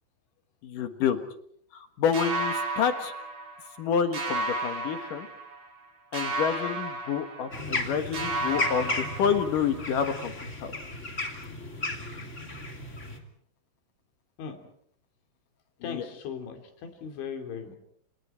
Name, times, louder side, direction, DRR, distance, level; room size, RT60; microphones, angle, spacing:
voice 1, 0.6-1.2 1.7-3.1 3.8-5.3 6.1-10.3 10.6-10.7 15.9-16.0, left 7 dB, 60° left, 7 dB, 2.4 m, -28 dB
sound 1, 2.1-3.8 4.1-5.8 6.1-7.9 8.1-9.8, right 2 dB, 45° right, 6.1 m, -33 dB
sound 2, 7.5-13.2, left 2 dB, 20° left, 2.2 m, -34 dB
voice 2, 15.8-17.8, left 6 dB, 80° left, 5 dB, 5.4 m, -38 dB
29.5 x 28.5 x 4.5 m, 0.65 s
omnidirectional pair, 5.3 m